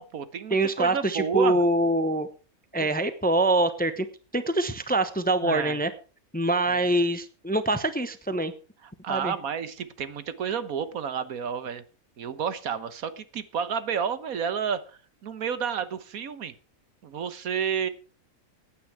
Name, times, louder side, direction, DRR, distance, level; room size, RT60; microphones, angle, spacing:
voice 1, 0.0-1.6 2.8-2.9 5.4-5.8 6.7-6.8 9.0-11.8 12.2-16.5 17.0-17.9, right 7 dB, 75° right, 13 dB, 1.5 m, -31 dB
voice 2, 0.5-2.3 2.7-4.1 4.3-5.9 6.3-8.5 9.1-9.3, right 2 dB, 10° left, 11 dB, 0.7 m, -24 dB
15.5 x 9.4 x 4.6 m, 0.36 s
omnidirectional pair, 1.5 m